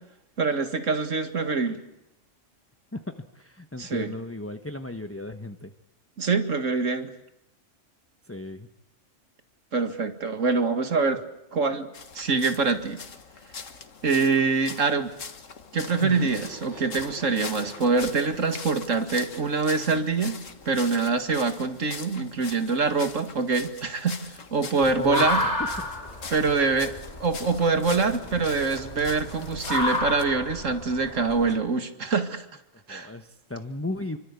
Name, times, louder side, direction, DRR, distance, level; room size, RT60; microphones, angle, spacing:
voice 1, 0.4-1.8 3.8-4.1 6.2-7.1 9.7-11.2 11.5-11.9 12.1-13.0 14.0-15.1 15.7-20.4 20.7-25.4 26.3-26.9 27.2-32.5 32.9-33.1, right 4 dB, 80° right, 8 dB, 2.4 m, -25 dB
voice 2, 2.9-5.7 8.2-8.7 16.0-16.3 25.0-26.0 32.9-34.2, left 2 dB, 10° left, 8 dB, 1.1 m, -35 dB
sound 1, 11.9-30.2, left 5 dB, 80° left, 2.0 m, -42 dB
sound 2, 15.9-21.1, right 1 dB, 65° right, 6.7 m, -47 dB
sound 3, 24.8-31.5, left 2 dB, 30° left, 3.9 m, -31 dB
27.5 x 24.5 x 8.4 m, 0.85 s
omnidirectional pair, 1.3 m